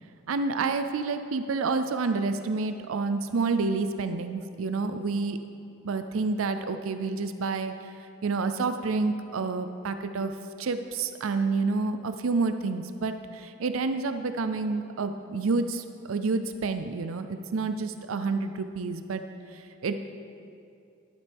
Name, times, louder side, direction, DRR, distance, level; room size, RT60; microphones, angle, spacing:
voice 1, 0.3-5.4 5.8-7.9 8.2-19.2 19.5-20.0, right 4 dB, 90° right, 9 dB, 0.5 m, -29 dB
12.5 x 11.5 x 3.5 m, 2.5 s
head